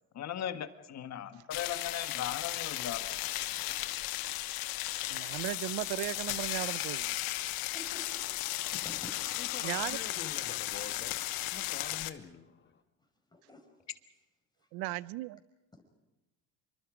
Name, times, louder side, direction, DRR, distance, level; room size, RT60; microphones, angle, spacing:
voice 1, 0.1-3.1 8.7-8.8, left 10 dB, 45° left, 1.6 m, -38 dB
sound 1, 1.5-12.1, left 17 dB, 70° left, 1.3 m, -35 dB
voice 2, 3.4-3.9 7.7-8.3 8.8-9.6 13.3-13.7 14.6-14.7 15.7-16.0, left 1 dB, 10° left, 5.4 m, -51 dB
voice 3, 5.1-7.3 9.6-10.0 14.7-15.4, right 19 dB, 70° right, 0.8 m, -36 dB
voice 4, 9.4-11.2 11.5-12.8, left 6 dB, 30° left, 1.8 m, -45 dB
27.0 x 24.5 x 5.1 m
supercardioid pair, 105°, 38 cm